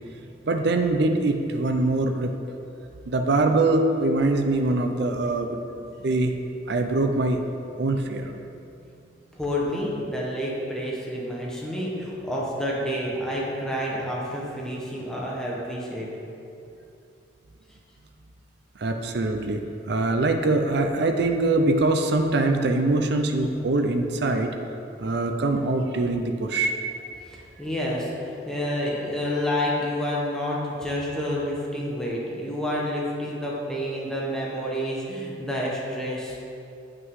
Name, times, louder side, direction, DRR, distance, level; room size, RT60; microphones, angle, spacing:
voice 1, 0.5-2.3 3.1-6.3 6.7-7.4 7.8-8.3 18.8-24.5 25.0-26.7, right 2 dB, 60° right, 5 dB, 0.5 m, -23 dB
voice 2, 9.3-16.1 27.2-36.4, equal, 5° left, -5 dB, 1.2 m, -29 dB
7.6 x 6.2 x 4.7 m, 2.6 s
head